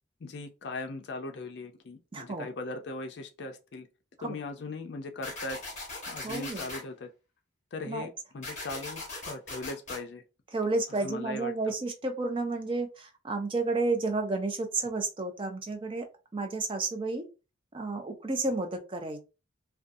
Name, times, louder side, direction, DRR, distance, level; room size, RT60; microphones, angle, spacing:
voice 1, 0.2-3.9 4.2-5.6 6.1-7.1 7.7-10.2 11.0-11.7, left 2 dB, 60° left, 0.4 m, -39 dB
voice 2, 2.1-2.5 4.2-4.4 6.2-6.7 7.9-8.1 10.5-16.1 16.3-17.3 17.7-19.2, right 3 dB, 25° right, 0.4 m, -31 dB
sound 1, 5.2-6.8 8.4-10.0, left 2 dB, 35° left, 1.1 m, -39 dB
2.5 x 2.3 x 2.5 m
head